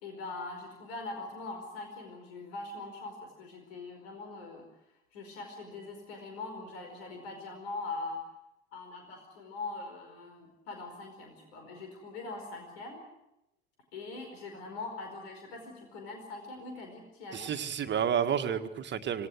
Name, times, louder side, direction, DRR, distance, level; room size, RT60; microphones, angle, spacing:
voice 1, 0.0-4.6 5.1-8.2 8.7-13.0 13.9-17.5, left 3 dB, 65° left, 3 dB, 4.9 m, -42 dB
voice 2, 17.3-19.3, right 8 dB, 35° right, 8 dB, 1.8 m, -30 dB
26.0 x 18.5 x 7.8 m, 0.90 s
figure-of-eight pair, 65°, 33 cm